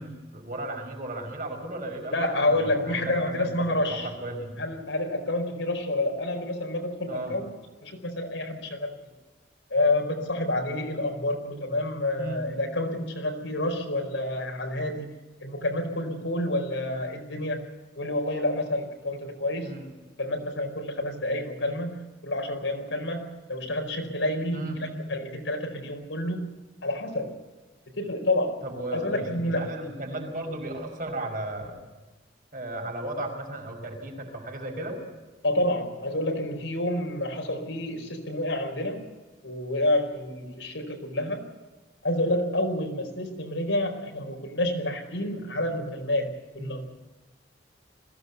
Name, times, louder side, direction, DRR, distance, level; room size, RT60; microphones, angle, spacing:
voice 1, 0.0-4.6 7.1-7.4 12.2-12.5 19.6-19.9 24.5-24.8 28.6-31.8 32.5-35.0 37.1-37.2 46.6-46.7, right 1 dB, 45° right, 2 dB, 5.3 m, -35 dB
voice 2, 2.1-4.1 4.6-7.5 7.8-9.0 9.7-15.1 15.4-17.6 18.0-19.7 20.2-26.5 26.8-27.3 28.0-28.6 28.9-29.6 35.4-39.1 39.4-41.5 42.0-46.9, left 1 dB, 80° left, 4 dB, 4.7 m, -29 dB
21.5 x 16.5 x 8.2 m, 1.2 s
head